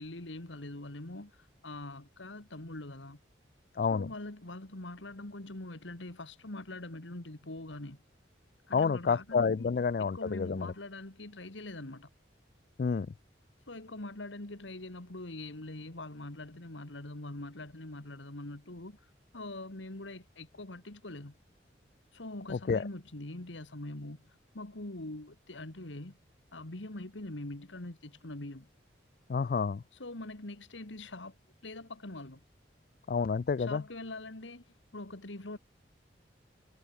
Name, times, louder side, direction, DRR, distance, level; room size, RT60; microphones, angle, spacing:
voice 1, 0.0-3.2 3.9-8.0 8.7-9.7 10.0-12.1 13.7-19.0 19.3-21.4 22.1-26.2 26.5-28.7 30.0-31.4 31.6-32.4 33.6-34.7 34.9-35.6, left 2 dB, 90° left, 2.2 m, -43 dB
voice 2, 3.8-4.1 8.7-10.7 12.8-13.1 22.5-22.8 29.3-29.8 33.1-33.8, left 5 dB, 50° left, 0.3 m, -29 dB
head